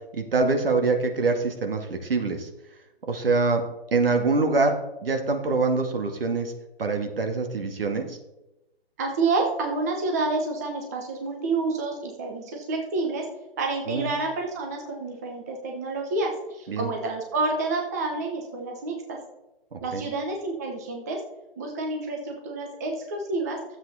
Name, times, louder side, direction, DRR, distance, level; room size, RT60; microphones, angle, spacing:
voice 1, 0.1-2.5 3.1-3.6 3.9-4.8 5.0-6.5 6.8-8.2 13.9-14.1 16.7-16.9 19.7-20.0, right 3 dB, 65° right, 5 dB, 2.1 m, -24 dB
voice 2, 9.0-13.3 13.6-19.2 19.8-21.2 21.6-23.6, right 3 dB, 15° right, 1 dB, 0.8 m, -29 dB
12.5 x 8.0 x 4.2 m, 0.96 s
hypercardioid pair, 170°, 31 cm